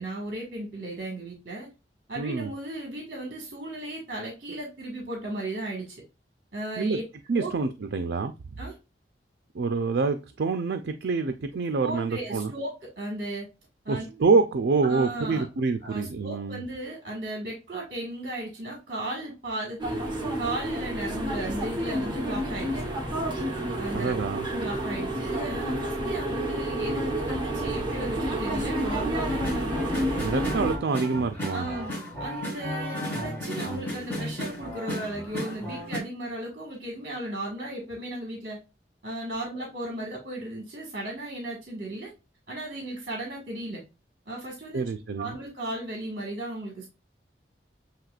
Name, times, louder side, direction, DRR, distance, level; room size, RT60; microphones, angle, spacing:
voice 1, 0.0-1.7 2.1-6.0 6.5-7.0 7.3-7.5 8.6-8.7 11.8-13.5 13.8-14.0 14.8-15.4 15.8-19.8 20.3-22.8 23.8-29.8 30.3-30.4 31.5-31.9 32.2-38.6 39.0-42.1 42.5-43.8 44.3-44.8 45.2-46.9, right 1 dB, 55° right, 1.6 m, -35 dB
voice 2, 2.2-2.5 6.8-7.0 7.3-8.3 9.5-12.5 13.9-16.6 23.9-24.4 30.2-31.7 44.7-45.4, right 4 dB, 70° right, 0.4 m, -26 dB
sound 1, 19.8-30.8, right 1 dB, 25° right, 1.1 m, -29 dB
sound 2, 29.3-36.0, equal, 10° left, 2.3 m, -34 dB
7.5 x 2.9 x 2.4 m
head